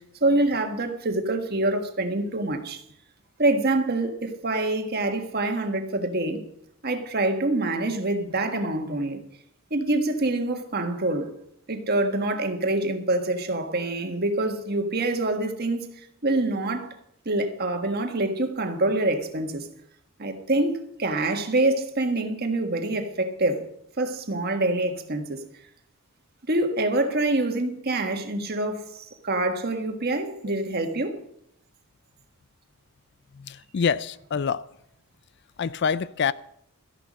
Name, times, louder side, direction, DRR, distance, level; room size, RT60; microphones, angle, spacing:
voice 1, 0.0-2.8 3.4-6.4 6.8-9.2 9.7-11.3 11.7-15.9 16.2-16.9 17.2-19.7 20.2-23.7 24.0-25.4 26.5-31.2, right 2 dB, 45° right, 1.6 m, -26 dB
voice 2, 33.3-34.6 35.6-36.3, left 6 dB, 50° left, 0.4 m, -26 dB
13.5 x 11.0 x 6.3 m
head